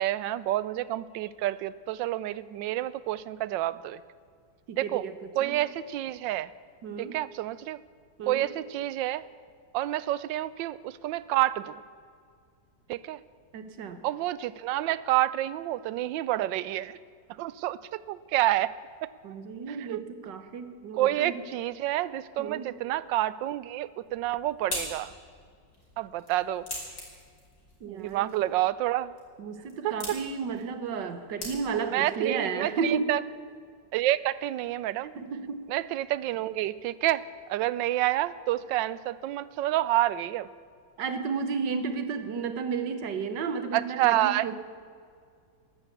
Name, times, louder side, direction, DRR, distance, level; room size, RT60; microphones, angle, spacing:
voice 1, 0.0-4.0 4.8-5.0 5.4-6.5 7.0-7.8 8.3-9.3 9.7-11.8 12.9-13.2 14.0-17.0 17.3-18.7 19.0-19.1 19.7-20.0 20.9-25.1 26.0-26.7 27.9-29.1 29.8-30.2 31.9-33.2 33.9-35.2 35.7-40.5 43.7-44.5, right 14 dB, 90° right, 18 dB, 1.3 m, -29 dB
voice 2, 4.7-5.1 5.4-5.6 6.8-7.2 8.2-8.5 13.5-14.0 19.2-21.4 22.4-22.6 27.8-28.4 29.4-33.1 35.2-35.7 41.0-44.6, right 5 dB, 75° right, 9 dB, 1.7 m, -32 dB
sound 1, 24.0-32.0, left 1 dB, 55° left, 3.9 m, -43 dB
13.0 x 12.0 x 8.2 m, 2.2 s
omnidirectional pair, 1.9 m